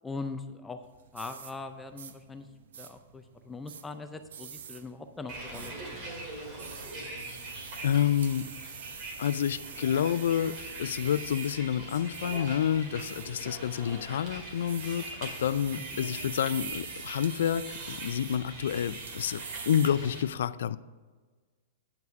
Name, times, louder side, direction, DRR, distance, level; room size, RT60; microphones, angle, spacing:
voice 1, 0.0-0.8 1.1-2.5 2.7-6.1 15.8-15.9, left 3 dB, 5° left, 7 dB, 0.4 m, -41 dB
sound 1, 0.8-19.9, right 8 dB, 80° right, 0.7 m, -46 dB
Bus, 5.3-20.2, right 1 dB, 30° right, 2.2 m, -42 dB
voice 2, 7.8-8.5 9.2-20.8, left 9 dB, 75° left, 16 dB, 0.4 m, -29 dB
9.2 x 5.9 x 6.3 m, 1.4 s
supercardioid pair, 170°, 0 cm